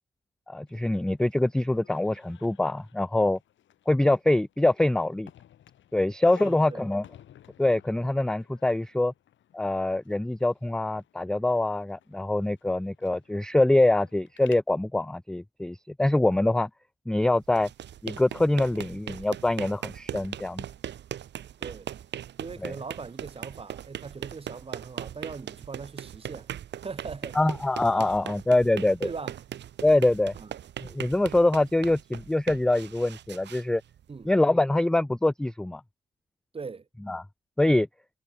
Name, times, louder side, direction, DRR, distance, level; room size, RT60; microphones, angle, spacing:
voice 1, 0.5-3.4 3.9-5.3 5.9-7.0 7.6-9.1 9.5-16.7 17.1-17.7 18.0-20.6 22.6-22.7 27.4-29.1 29.8-30.3 30.9-33.8 34.3-35.8 37.1-37.2 37.6-37.9, left 2 dB, 5° left, 0.3 m, -24 dB
sound 1, 0.7-14.6, left 11 dB, 70° left, 7.6 m, -55 dB
voice 2, 6.4-6.9 18.7-18.8 21.6-21.9 22.4-26.5 26.8-27.4 29.0-29.4 30.3-30.5 34.1-34.3 36.5-36.9, right 4 dB, 30° right, 2.0 m, -40 dB
sound 2, 17.4-34.4, right 10 dB, 60° right, 1.3 m, -40 dB
cardioid pair, 90°, 20 cm